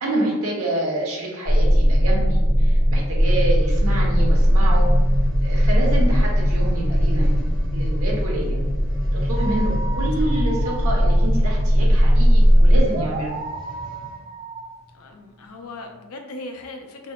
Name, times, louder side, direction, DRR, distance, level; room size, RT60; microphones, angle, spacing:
voice 1, 0.0-4.9 5.4-7.3 7.7-8.6 9.1-13.3, right 1 dB, 75° right, -3 dB, 1.0 m, -27 dB
sound 1, 1.5-12.8, equal, 35° left, 1.4 m, -18 dB
sound 2, 2.9-14.3 14.9-15.0, equal, ahead, 1.5 m, -40 dB
sound 3, 9.3-15.9, right 3 dB, 55° right, 0.8 m, -35 dB
voice 2, 14.9-17.1, left 2 dB, 75° left, 4 dB, 0.5 m, -38 dB
3.9 x 2.8 x 2.3 m, 1.2 s
head